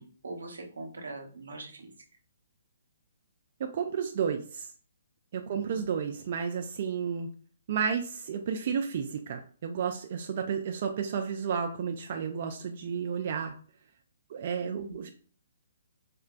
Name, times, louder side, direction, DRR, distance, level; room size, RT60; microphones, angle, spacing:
voice 1, 0.0-1.9 5.5-5.8 14.6-15.0, right 3 dB, 90° right, 3 dB, 0.8 m, -42 dB
voice 2, 3.6-4.7 5.3-7.3 7.7-13.5 14.3-15.1, right 7 dB, 50° right, 4 dB, 0.3 m, -32 dB
4.3 x 2.2 x 2.5 m, 0.43 s
hypercardioid pair, 150°, 0 cm